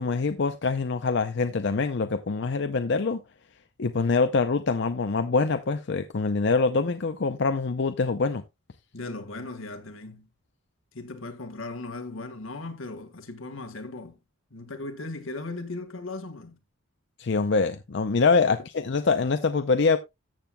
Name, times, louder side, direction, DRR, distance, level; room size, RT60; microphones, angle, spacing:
voice 1, 0.0-3.2 3.8-8.4 17.2-20.0, left 4 dB, 60° left, 0.6 m, -24 dB
voice 2, 8.9-10.3 10.9-14.2 14.5-16.6 18.4-18.6, left 2 dB, 80° left, 1.6 m, -37 dB
14.0 x 7.6 x 2.2 m
head